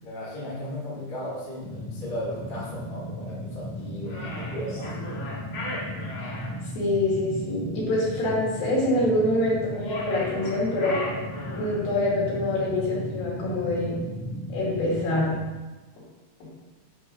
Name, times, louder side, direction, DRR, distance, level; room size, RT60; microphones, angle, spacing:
voice 1, 0.0-5.0, equal, 25° left, -6 dB, 1.1 m, -36 dB
sound 1, 1.6-15.4, equal, 30° right, 2.1 m, -36 dB
sound 2, 4.1-6.5 9.7-11.8, left 2 dB, 55° left, 1.5 m, -36 dB
voice 2, 6.8-11.0 11.5-14.0 14.5-15.3, left 1 dB, 75° left, -6 dB, 4.0 m, -25 dB
7.5 x 6.7 x 2.3 m, 1.2 s
omnidirectional pair, 4.2 m